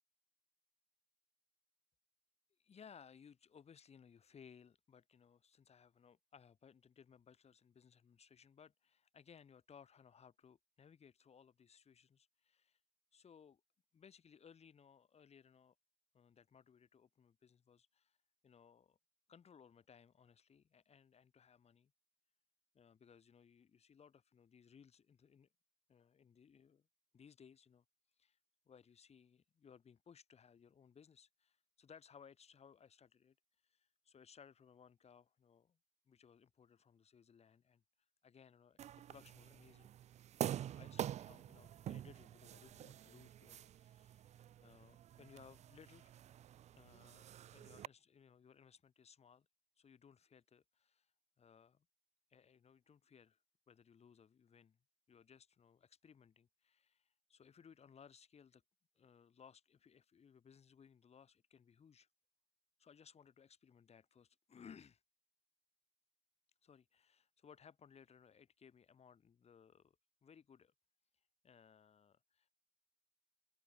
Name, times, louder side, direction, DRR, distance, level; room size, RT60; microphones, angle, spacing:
voice 1, 2.6-12.8 13.1-13.6 13.9-15.8 16.1-18.2 18.4-19.0 19.3-21.9 22.7-25.5 25.9-26.9 27.1-27.8 28.2-28.4 28.7-33.4 33.6-35.8 36.1-37.8 38.2-38.8 39.1-39.9 40.4-46.1 46.8-49.5 49.8-51.1 51.4-51.9 52.3-54.8 55.1-58.6 59.0-62.1 62.8-65.0 66.6-70.7 71.4-72.5, left 7 dB, 35° left, 7.0 m, -63 dB
sound 1, 38.8-47.9, right 11 dB, 35° right, 0.6 m, -47 dB
open air
hypercardioid pair, 70°, 19 cm